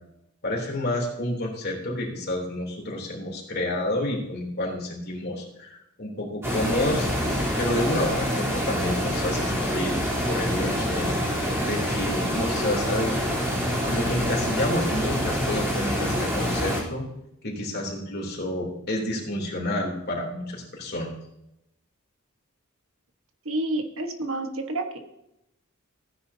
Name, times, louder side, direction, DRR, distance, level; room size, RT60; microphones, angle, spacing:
voice 1, 0.4-7.1 7.6-10.0 10.3-11.1 11.6-13.2 13.8-17.0 17.4-21.1, left 1 dB, 50° left, -1 dB, 3.2 m, -29 dB
sound 1, 6.4-16.8, equal, 10° right, 3.7 m, -26 dB
voice 2, 23.4-25.0, right 2 dB, 65° right, 5 dB, 1.4 m, -29 dB
15.5 x 9.7 x 2.8 m, 0.82 s
head